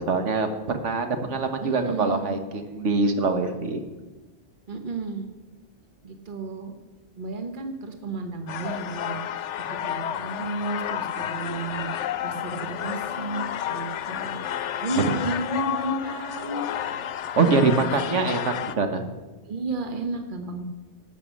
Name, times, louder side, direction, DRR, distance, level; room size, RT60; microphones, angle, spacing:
voice 1, 0.0-3.8 17.4-19.1, right 4 dB, 85° right, 7 dB, 1.6 m, -24 dB
voice 2, 1.6-2.3 4.7-5.3 6.0-6.7 7.2-16.7 17.3-18.4 19.4-20.6, right 3 dB, 45° right, 6 dB, 1.5 m, -33 dB
sound 1, 8.5-18.7, left 10 dB, 80° left, 0.9 m, -31 dB
11.0 x 8.6 x 7.2 m, 1.2 s
omnidirectional pair, 1.2 m